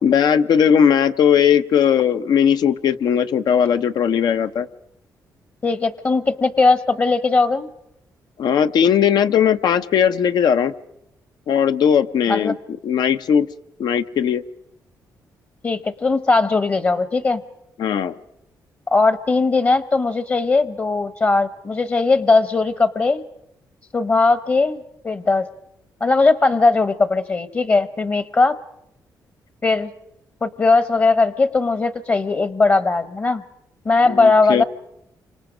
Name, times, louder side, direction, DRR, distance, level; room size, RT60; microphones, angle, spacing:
voice 1, 0.0-4.7 8.4-10.7 11.5-12.6 12.8-13.5 13.8-14.4 17.8-18.2 34.0-34.6, left 8 dB, 75° left, 10 dB, 0.9 m, -18 dB
voice 2, 5.6-7.7 12.3-12.5 15.6-17.4 18.9-23.2 23.9-24.8 25.0-25.5 26.0-28.5 29.6-29.9 30.4-33.4 33.8-34.6, left 3 dB, 35° left, 14 dB, 1.0 m, -18 dB
29.0 x 26.0 x 5.1 m, 0.79 s
cardioid pair, 90°, 7 cm